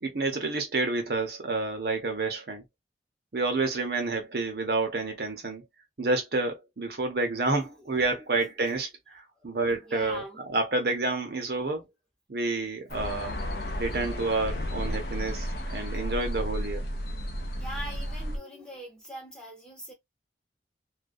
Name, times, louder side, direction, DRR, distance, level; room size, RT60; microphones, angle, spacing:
voice 1, 0.0-2.6 3.3-5.6 6.0-11.9 12.3-13.4 13.8-16.8, right 3 dB, 60° right, 0.7 m, -29 dB
voice 2, 7.5-8.7 9.4-9.5 9.9-10.4 17.6-19.9, equal, 5° left, 0.8 m, -42 dB
sound 1, 12.9-18.4, equal, 60° left, 0.6 m, -33 dB
2.3 x 2.2 x 2.4 m
head